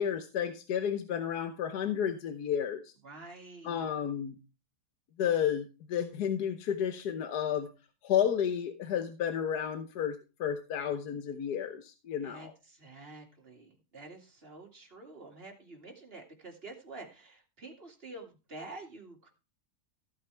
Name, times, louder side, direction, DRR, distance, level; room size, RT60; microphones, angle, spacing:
voice 1, 0.0-2.9 3.6-4.4 5.2-7.7 8.0-12.5, left 9 dB, 75° left, 8 dB, 1.5 m, -32 dB
voice 2, 3.0-3.9 12.2-19.3, right 2 dB, 35° right, 2 dB, 2.6 m, -48 dB
15.0 x 8.6 x 3.4 m, 0.31 s
omnidirectional pair, 1.7 m